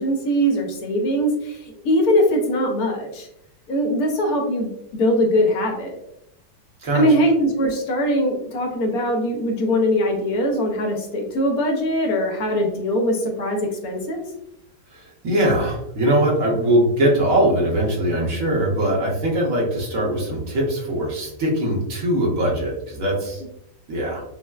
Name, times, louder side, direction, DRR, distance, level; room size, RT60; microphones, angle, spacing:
voice 1, 0.0-3.3 3.7-5.9 6.9-14.2, equal, 70° left, 1 dB, 1.1 m, -21 dB
voice 2, 14.9-23.4 23.9-24.2, right 1 dB, 60° right, -3 dB, 1.2 m, -21 dB
5.4 x 2.1 x 2.3 m, 0.78 s
omnidirectional pair, 1.8 m